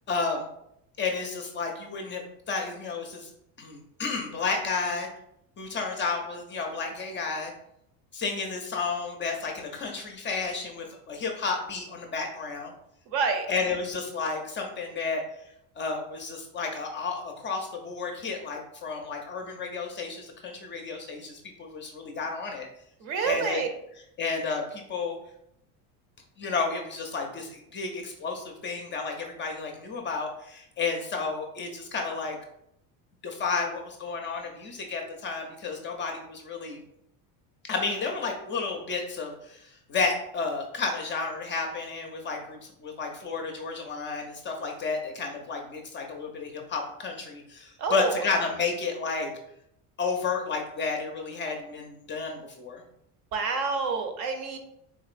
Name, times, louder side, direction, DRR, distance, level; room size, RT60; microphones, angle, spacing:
voice 1, 0.1-0.5 1.0-3.3 3.6-5.1 5.6-7.5 8.1-12.7 13.5-15.2 15.8-22.7 23.2-23.6 24.2-25.2 26.4-32.4 33.2-36.8 37.7-49.3 50.0-52.8, left 4 dB, 30° left, 2 dB, 0.4 m, -32 dB
voice 2, 13.1-13.5 23.0-23.7 47.8-48.3 53.3-54.6, right 5 dB, 60° right, 5 dB, 0.7 m, -28 dB
3.7 x 2.8 x 2.4 m, 0.76 s
cardioid pair, 120°, 42 cm